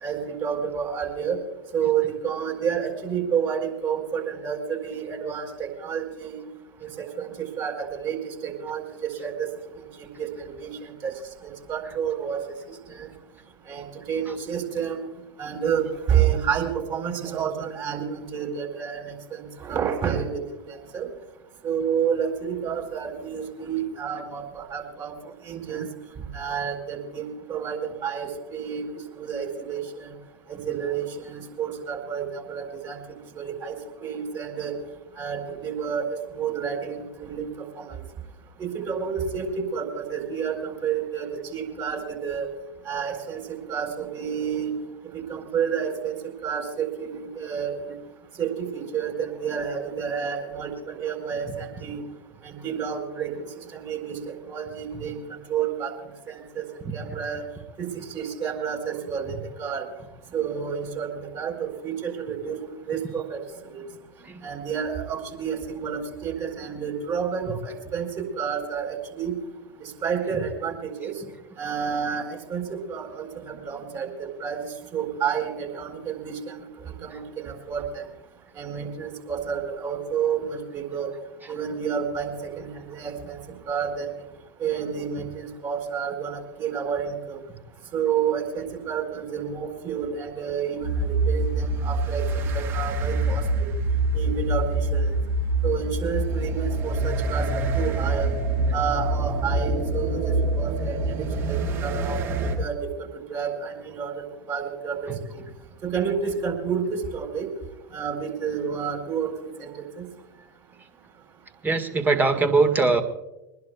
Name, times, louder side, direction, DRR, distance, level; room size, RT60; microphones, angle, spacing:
voice 1, 0.0-1.4 1.7-6.4 7.0-7.3 7.6-9.5 9.8-11.1 11.4-12.4 12.9-13.1 13.7-15.0 15.4-21.1 21.6-25.1 25.4-25.8 26.3-28.9 29.1-30.1 30.5-33.0 33.4-33.8 34.0-34.7 35.2-36.1 36.3-37.5 37.8-37.9 38.6-42.5 42.9-43.4 43.7-44.7 45.1-46.1 46.4-47.9 48.4-52.0 52.4-53.3 53.7-55.2 55.5-55.9 56.3-56.6 56.9-57.4 57.8-59.9 60.3-62.6 62.9-63.4 63.7-63.8 64.4-69.3 69.8-71.1 71.6-74.6 74.9-78.1 78.6-81.1 81.5-83.4 83.7-84.1 84.6-87.4 87.9-93.5 94.1-95.2 95.6-98.3 98.7-102.8 103.3-104.2 104.5-105.0 105.8-107.5 107.9-109.3 109.6-110.0, right 7 dB, 35° right, 2 dB, 4.3 m, -30 dB
sound 1, 90.8-102.6, right 2 dB, 55° right, 7.3 m, -25 dB
voice 2, 111.6-113.0, right 3 dB, 15° right, 7 dB, 1.7 m, -21 dB
23.5 x 20.0 x 2.3 m, 0.99 s
figure-of-eight pair, 85°, 11 cm